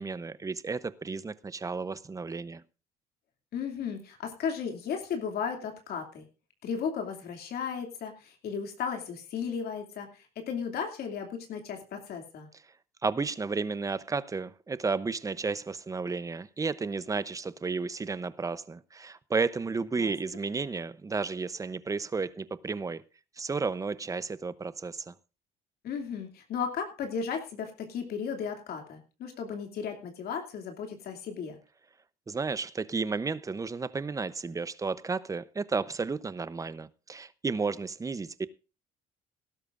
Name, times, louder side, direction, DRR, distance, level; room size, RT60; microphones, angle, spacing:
voice 1, 0.0-2.6 13.0-23.0 23.4-25.1 32.3-38.5, right 4 dB, 20° right, 0.8 m, -32 dB
voice 2, 3.5-6.3 6.6-12.5 20.0-20.1 25.8-31.6, left 6 dB, 65° left, 2.7 m, -35 dB
18.0 x 12.5 x 2.6 m
cardioid pair, 110°, 17 cm